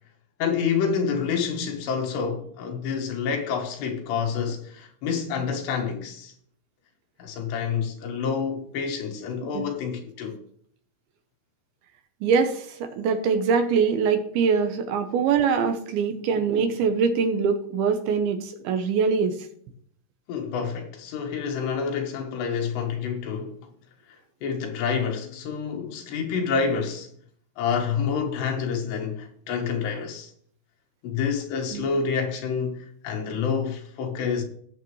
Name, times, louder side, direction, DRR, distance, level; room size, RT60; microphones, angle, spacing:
voice 1, 0.4-6.3 7.2-10.4 20.3-23.7 24.4-27.1 27.6-30.3 31.0-34.4, left 6 dB, 80° left, 3.5 m, -28 dB
voice 2, 12.2-19.4 31.7-31.9, right 5 dB, 75° right, 2.5 m, -23 dB
18.5 x 7.2 x 3.1 m
omnidirectional pair, 4.9 m